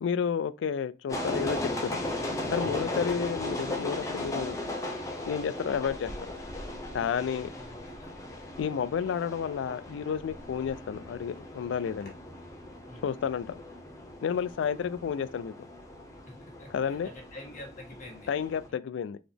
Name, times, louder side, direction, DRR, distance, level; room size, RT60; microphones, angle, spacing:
voice 1, 0.0-2.0 2.5-4.6 5.3-6.1 6.9-7.5 8.6-12.1 13.0-13.5 14.2-15.5 16.7-17.1 18.3-19.2, left 7 dB, 85° left, 0.3 m, -31 dB
sound 1, 1.1-18.7, left 1 dB, 15° left, 0.6 m, -37 dB
sound 2, 5.4-9.0 9.4-13.4 14.4-14.9, equal, 60° left, 1.6 m, -50 dB
voice 2, 7.5-8.1 12.9-13.1 16.2-18.3 18.7-18.8, left 1 dB, 45° left, 1.4 m, -47 dB
4.0 x 2.9 x 3.4 m
head